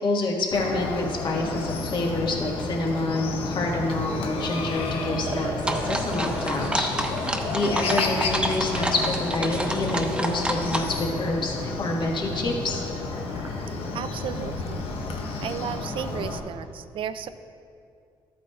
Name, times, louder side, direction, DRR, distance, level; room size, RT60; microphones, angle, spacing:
voice 1, 0.0-12.8, left 2 dB, 55° left, -1 dB, 1.6 m, -27 dB
Chicken rooster, 0.5-16.4, left 3 dB, 80° left, 0.9 m, -31 dB
Liquid, 5.0-16.2, right 3 dB, 35° right, 0.7 m, -42 dB
sound 1, 5.6-10.8, right 1 dB, 10° right, 0.9 m, -29 dB
voice 2, 13.9-15.0 15.4-17.3, right 9 dB, 65° right, 12 dB, 0.4 m, -34 dB
13.0 x 8.4 x 2.4 m, 2.4 s
cardioid pair, 70°, 9 cm